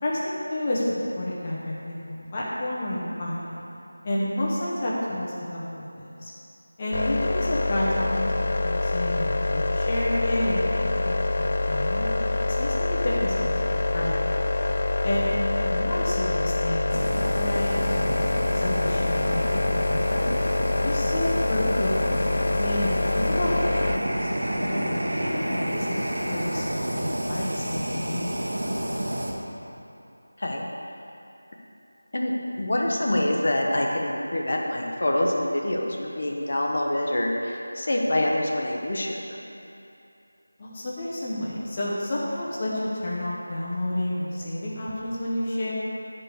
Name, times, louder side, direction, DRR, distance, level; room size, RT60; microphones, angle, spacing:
voice 1, 0.0-3.6 4.0-5.6 6.0-6.3 6.8-8.3 8.6-11.2 11.7-12.1 12.4-14.4 15.0-15.3 15.6-18.2 18.5-20.3 20.8-23.5 23.8-26.0 26.3-28.6 40.6-42.7 43.0-45.7, left 1 dB, 20° left, -7 dB, 0.9 m, -30 dB
sound 1, 6.9-24.0, left 2 dB, 40° left, 0.3 m, -25 dB
Fire, 16.9-29.3, right 1 dB, 65° right, 1.2 m, -30 dB
voice 2, 32.1-39.4, left 1 dB, 55° left, -1 dB, 1.0 m, -26 dB
9.8 x 5.1 x 4.8 m, 2.8 s
figure-of-eight pair, 175°, 0 cm